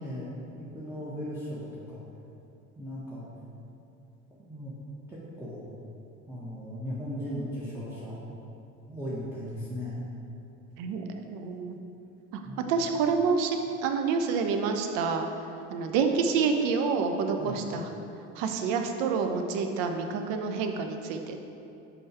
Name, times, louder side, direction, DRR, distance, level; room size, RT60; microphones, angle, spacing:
voice 1, 0.0-2.0 2.8-3.3 4.5-4.7 5.1-5.6 6.3-8.2 8.9-10.0 12.4-12.8 17.4-17.6, equal, 5° right, -9 dB, 1.4 m, -37 dB
voice 2, 10.8-11.8 12.7-15.3 15.7-17.8 18.4-21.5, right 5 dB, 60° right, 5 dB, 0.7 m, -28 dB
5.3 x 5.0 x 4.7 m, 2.8 s
hypercardioid pair, 65°, 37 cm